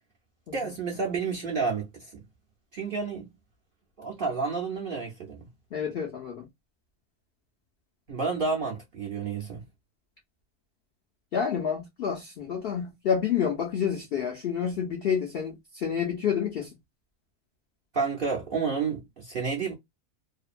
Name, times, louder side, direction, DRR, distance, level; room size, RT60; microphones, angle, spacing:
voice 1, 0.5-2.1 2.7-3.3 4.0-5.5 8.1-9.6 17.9-19.7, right 4 dB, 55° right, 0.6 m, -30 dB
voice 2, 5.7-6.5 11.3-16.7, left 7 dB, 70° left, 0.5 m, -29 dB
2.7 x 2.1 x 2.4 m
omnidirectional pair, 1.6 m